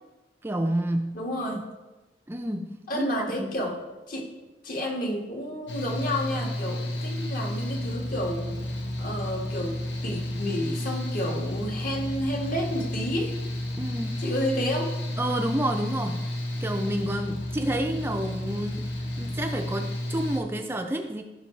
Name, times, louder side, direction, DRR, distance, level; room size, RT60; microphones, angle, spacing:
voice 1, 0.4-1.2 2.3-3.1 3.4-3.6 13.8-14.2 15.2-16.3 16.6-18.9 19.2-21.2, right 1 dB, 15° right, 4 dB, 0.5 m, -29 dB
voice 2, 1.1-1.7 2.9-3.8 4.1-4.3 4.6-8.5 9.0-13.4 14.2-15.0, equal, 50° left, 1 dB, 1.7 m, -30 dB
Mechanical fan, 5.7-20.4, left 1 dB, 85° left, 1.5 m, -32 dB
15.0 x 5.4 x 3.2 m, 1.1 s
head